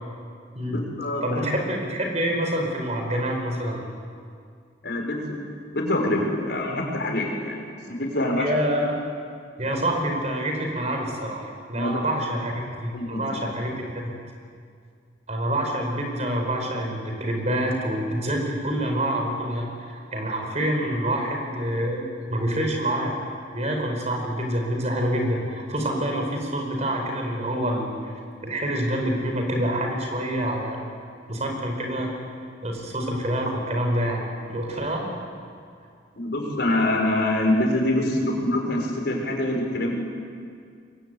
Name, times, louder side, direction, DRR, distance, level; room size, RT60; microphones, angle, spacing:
voice 1, 0.7-1.5 4.8-5.4 5.7-7.6 7.9-8.5 11.7-12.0 12.9-13.3 13.6-13.8 36.2-40.1, left 1 dB, 60° left, 1 dB, 5.5 m, -25 dB
voice 2, 1.2-3.8 8.3-8.9 9.6-12.5 12.8-14.1 15.3-22.0 22.3-23.2 23.5-30.8 31.3-32.1 32.6-35.2, right 1 dB, 35° right, 2 dB, 5.2 m, -27 dB
24.0 x 23.0 x 9.4 m, 2.2 s
head